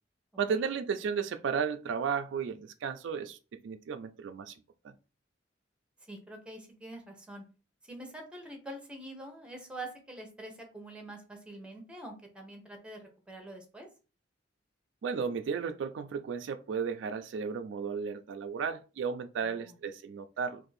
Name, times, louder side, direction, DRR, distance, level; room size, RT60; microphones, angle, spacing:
voice 1, 0.4-3.4 3.6-4.6 15.0-20.6, right 6 dB, 75° right, 0.3 m, -34 dB
voice 2, 6.1-7.4 7.8-13.9 19.4-19.8, right 1 dB, 5° right, 0.7 m, -45 dB
2.6 x 2.5 x 3.9 m
head